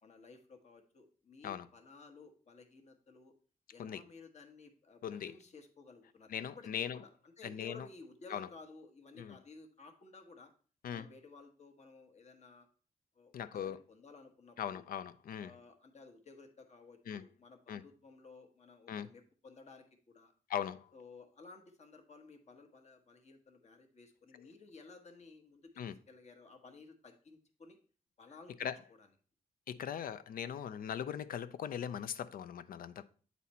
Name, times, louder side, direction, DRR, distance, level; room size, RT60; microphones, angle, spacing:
voice 1, 0.0-3.3 3.7-10.5 10.9-12.7 13.1-14.9 15.4-20.3 20.9-27.8 28.2-29.1, left 4 dB, 50° left, 1.1 m, -56 dB
voice 2, 6.3-7.0 7.4-7.8 8.3-8.5 9.2-9.4 10.8-11.0 13.3-13.8 14.6-15.5 17.1-17.2 17.7-17.8 18.9-19.1 20.5-20.8 25.8-25.9 28.6-28.7 29.7-33.0, left 9 dB, 80° left, 0.4 m, -39 dB
8.3 x 4.1 x 4.2 m
wide cardioid pair, 125°, 14 cm